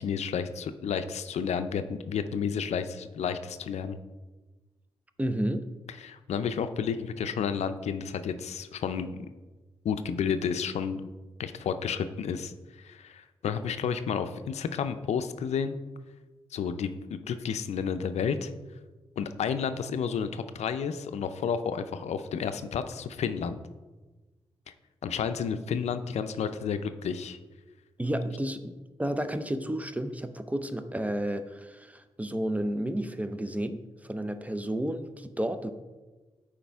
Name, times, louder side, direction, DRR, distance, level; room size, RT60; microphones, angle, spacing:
voice 1, 0.0-4.0 6.0-9.3 9.8-11.0 11.4-12.5 12.8-15.8 16.5-18.5 19.2-23.6 25.0-27.4, left 7 dB, 80° left, 10 dB, 0.4 m, -31 dB
voice 2, 5.2-5.7 28.0-28.7 29.0-35.7, right 1 dB, 15° right, 10 dB, 0.6 m, -31 dB
8.5 x 5.0 x 3.5 m, 1.2 s
cardioid pair, 55°, 11 cm